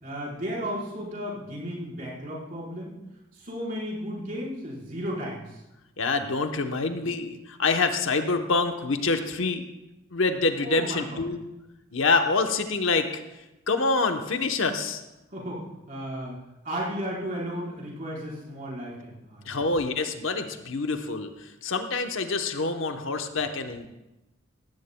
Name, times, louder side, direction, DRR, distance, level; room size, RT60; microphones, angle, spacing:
voice 1, 0.0-2.9 3.3-5.6 10.5-11.2 15.3-16.4 16.6-19.7, equal, 40° right, -5 dB, 4.3 m, -34 dB
voice 2, 6.0-9.6 10.1-11.4 11.9-13.2 13.7-15.0 19.5-23.9, left 3 dB, 70° left, 6 dB, 0.9 m, -26 dB
17.0 x 14.5 x 2.2 m, 0.97 s
head